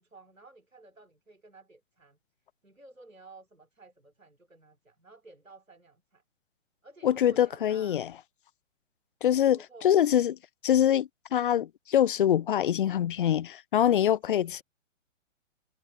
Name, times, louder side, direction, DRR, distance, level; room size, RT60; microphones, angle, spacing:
voice 1, 0.0-2.2 2.6-6.2 6.8-8.1 9.5-10.2 13.9-14.6, right 2 dB, 90° right, 3.3 m, -54 dB
voice 2, 7.0-8.1 9.2-10.3 10.6-14.6, left 10 dB, 45° left, 0.5 m, -24 dB
figure-of-eight pair, 125°, 38 cm